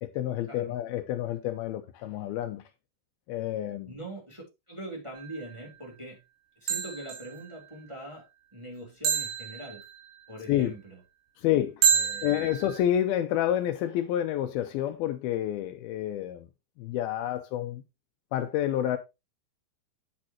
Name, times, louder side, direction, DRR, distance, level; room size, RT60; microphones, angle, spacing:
voice 1, 0.0-2.6 3.3-3.9 10.5-10.7 11.4-11.8 12.2-16.5 16.8-17.8 18.3-19.0, left 11 dB, 90° left, 2.2 m, -29 dB
voice 2, 3.8-6.2 6.6-8.2 8.5-9.8 10.3-11.0 11.9-12.5, right 1 dB, 10° right, 2.6 m, -42 dB
sound 1, 5.2-5.5 6.7-7.4 9.1-10.1 11.8-12.8, right 8 dB, 75° right, 4.9 m, -28 dB
8.7 x 8.5 x 2.9 m
omnidirectional pair, 5.0 m